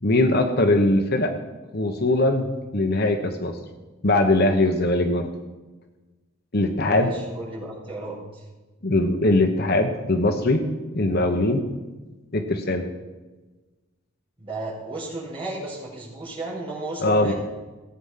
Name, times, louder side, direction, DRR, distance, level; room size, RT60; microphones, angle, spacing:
voice 1, 0.0-1.3 1.7-2.5 2.7-3.6 4.0-5.3 6.5-7.1 8.8-10.6 10.9-11.6 12.3-12.8 17.0-17.3, left 2 dB, 45° left, 6 dB, 1.1 m, -21 dB
voice 2, 6.8-8.4 14.4-17.3, right 2 dB, 25° right, -6 dB, 5.0 m, -34 dB
17.0 x 9.0 x 5.7 m, 1.2 s
head